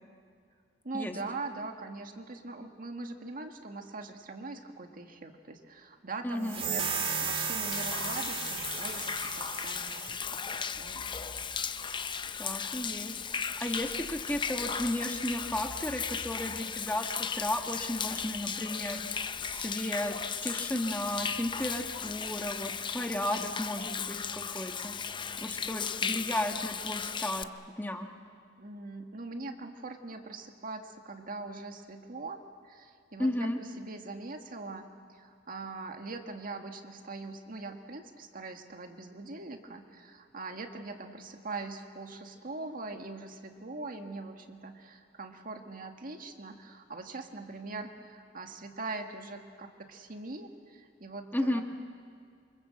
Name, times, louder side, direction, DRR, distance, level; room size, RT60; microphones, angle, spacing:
voice 1, 0.8-11.1 28.6-33.5 33.8-51.6, right 3 dB, 50° right, 4 dB, 1.8 m, -42 dB
voice 2, 6.2-6.6 12.4-24.9 25.4-27.5 27.8-28.1 33.2-33.6 51.3-51.6, left 1 dB, 10° left, 4 dB, 1.4 m, -34 dB
sound 1, 6.4-10.1, right 5 dB, 30° right, 2.8 m, -34 dB
Human voice / Rain / Stream, 7.7-27.4, left 6 dB, 25° left, 0.6 m, -36 dB
27.5 x 25.0 x 7.7 m, 2.3 s
head